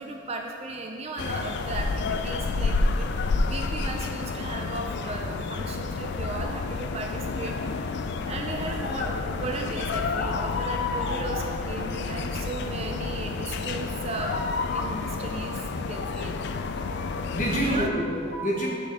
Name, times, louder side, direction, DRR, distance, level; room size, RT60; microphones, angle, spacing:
voice 1, 0.0-3.1 3.5-14.5 14.7-16.3 17.5-17.9, right 3 dB, 30° right, 2 dB, 0.4 m, -36 dB
sound 1, 1.2-17.9, left 4 dB, 55° left, 0.3 m, -29 dB
voice 2, 16.9-18.7, equal, 35° left, -2 dB, 1.1 m, -28 dB
7.9 x 6.2 x 3.5 m, 2.5 s
head